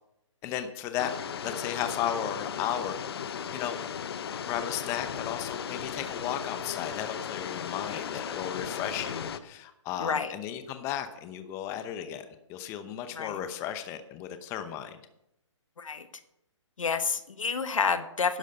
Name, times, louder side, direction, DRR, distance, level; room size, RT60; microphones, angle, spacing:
voice 1, 0.4-1.1 1.4-3.0 3.2-3.8 4.5-12.2 12.5-15.0, left 10 dB, 15° left, 9 dB, 0.8 m, -35 dB
sound 1, 1.0-9.4, left 8 dB, 50° left, 0.9 m, -36 dB
voice 2, 10.0-10.3 13.2-13.3 15.8-16.0 16.8-18.4, left 5 dB, 80° left, 10 dB, 1.4 m, -29 dB
12.0 x 9.8 x 5.4 m, 0.82 s
hypercardioid pair, 155°, 16 cm